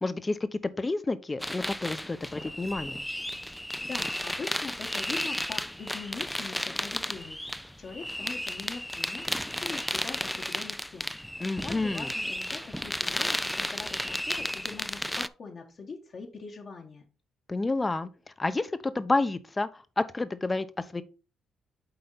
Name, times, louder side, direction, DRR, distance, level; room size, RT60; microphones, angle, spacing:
voice 1, 0.0-3.0 11.4-12.1 17.5-18.1 18.4-21.0, left 2 dB, 20° left, 0.7 m, -30 dB
sound 1, 1.4-15.3, left 1 dB, 5° left, 0.4 m, -33 dB
voice 2, 3.5-7.4 7.8-9.3 9.6-17.0, left 4 dB, 50° left, 1.3 m, -42 dB
7.9 x 4.2 x 4.0 m
cardioid pair, 90°, 0 cm